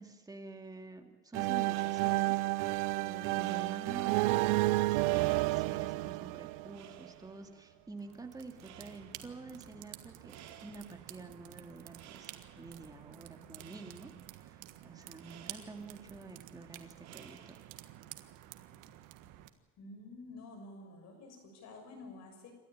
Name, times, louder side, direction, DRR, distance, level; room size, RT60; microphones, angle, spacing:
voice 1, 0.0-2.7 3.0-17.6, right 3 dB, 10° right, 5 dB, 2.2 m, -49 dB
sound 1, 1.3-7.1, right 21 dB, 90° right, 0.7 m, -31 dB
sound 2, 1.6-18.0, right 9 dB, 55° right, 2.6 m, -58 dB
sound 3, 8.0-19.5, right 14 dB, 75° right, 1.6 m, -51 dB
voice 2, 19.8-22.5, left 2 dB, 55° left, 5 dB, 6.5 m, -50 dB
28.0 x 13.0 x 8.9 m, 1.2 s
cardioid pair, 135°, 32 cm